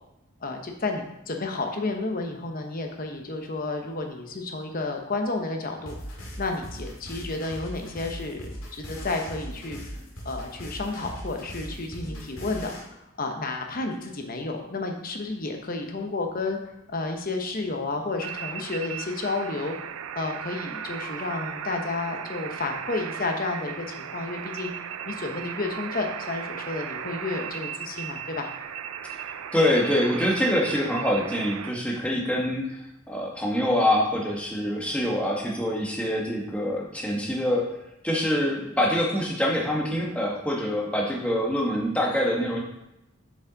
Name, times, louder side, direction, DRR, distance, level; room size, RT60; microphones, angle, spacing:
voice 1, 0.4-5.9 6.4-9.8 10.2-16.6 16.9-19.8 20.1-24.7 25.0-28.5, left 3 dB, 45° left, 4 dB, 0.9 m, -31 dB
sound 1, 5.9-12.8, equal, 85° left, 2.0 m, -39 dB
sound 2, 18.2-31.7, right 8 dB, 85° right, 0.4 m, -36 dB
voice 2, 29.5-32.8 33.1-37.7 38.0-42.6, left 1 dB, 5° left, -2 dB, 1.2 m, -25 dB
7.0 x 5.2 x 4.0 m, 0.89 s
head